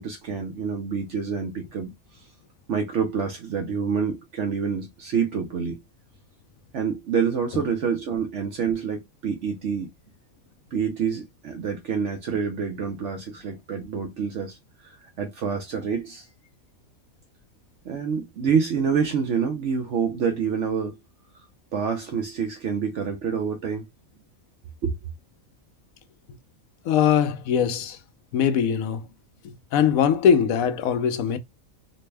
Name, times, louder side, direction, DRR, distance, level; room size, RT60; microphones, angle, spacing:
voice 1, 0.0-2.3 2.7-5.8 6.7-9.9 10.7-14.6 14.8-16.3 17.8-20.9 21.3-21.4 21.7-23.8 24.8-25.0, right 6 dB, 65° right, 0.9 m, -27 dB
voice 2, 26.9-28.0 28.3-29.1 29.4-31.4, left 8 dB, 80° left, 1.0 m, -21 dB
4.2 x 2.1 x 3.3 m
omnidirectional pair, 1.5 m